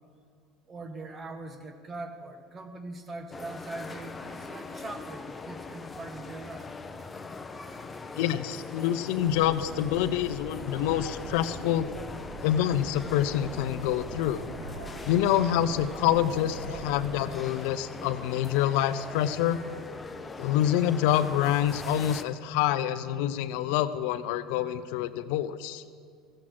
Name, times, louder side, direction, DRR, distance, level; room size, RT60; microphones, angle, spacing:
voice 1, 0.7-6.7, right 2 dB, 30° right, 7 dB, 1.3 m, -41 dB
sound 1, 3.3-22.2, left 3 dB, 20° left, 0.7 m, -41 dB
voice 2, 8.2-11.9 12.4-14.4 15.1-19.6 20.4-25.8, left 11 dB, 75° left, 13 dB, 0.5 m, -27 dB
sound 2, 9.2-17.3, right 2 dB, 85° right, 1.9 m, -43 dB
14.5 x 7.6 x 7.6 m, 2.1 s
supercardioid pair, 95°, 0 cm